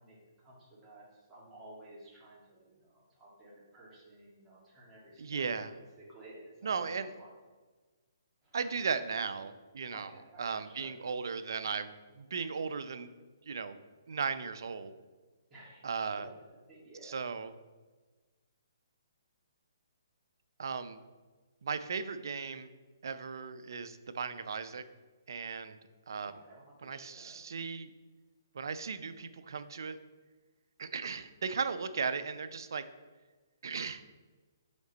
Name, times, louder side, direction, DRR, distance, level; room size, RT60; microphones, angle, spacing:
voice 1, 0.0-5.5 6.0-6.5 6.8-7.3 8.4-8.9 9.9-11.0 15.5-15.9 16.5-17.2 26.2-27.4, right 1 dB, 10° right, -7 dB, 1.8 m, -54 dB
voice 2, 5.2-5.7 6.6-7.1 8.5-10.1 10.4-13.1 13.4-13.8 14.1-14.9 15.8-16.3 17.0-17.5 20.6-21.0 21.6-22.7 23.0-24.8 25.3-25.8 26.1-26.3 26.8-27.9 28.5-30.0 30.8-32.9 33.6-34.1, right 5 dB, 70° right, 11 dB, 0.4 m, -36 dB
5.2 x 5.1 x 4.0 m, 1.3 s
hypercardioid pair, 155°, 2 cm